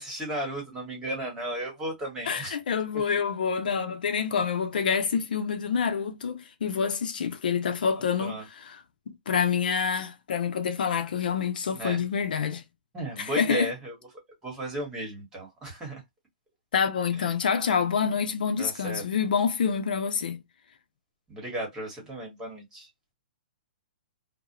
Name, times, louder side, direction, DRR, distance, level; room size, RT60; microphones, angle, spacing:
voice 1, 0.0-2.5 8.2-8.4 11.7-12.0 12.9-13.9 14.4-16.0 17.2-17.3 18.6-19.0 21.3-22.9, right 1 dB, 10° right, 1.2 m, -34 dB
voice 2, 2.3-8.8 9.3-12.6 13.2-13.7 16.7-20.4, left 6 dB, 75° left, 0.5 m, -27 dB
2.3 x 2.1 x 2.8 m
hypercardioid pair, 140°, 5 cm